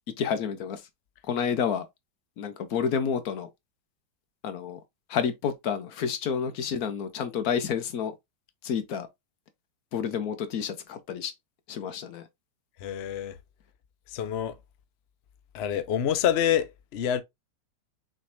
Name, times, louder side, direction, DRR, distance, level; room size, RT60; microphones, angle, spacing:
voice 1, 0.2-0.8 1.2-1.9 2.4-3.5 4.4-4.8 5.1-8.1 8.6-9.1 9.9-11.3 11.7-12.3, left 7 dB, 60° left, 1.2 m, -29 dB
voice 2, 12.8-13.4 14.1-14.6 15.5-17.2, left 10 dB, 80° left, 0.5 m, -27 dB
6.2 x 3.2 x 2.6 m
omnidirectional pair, 1.9 m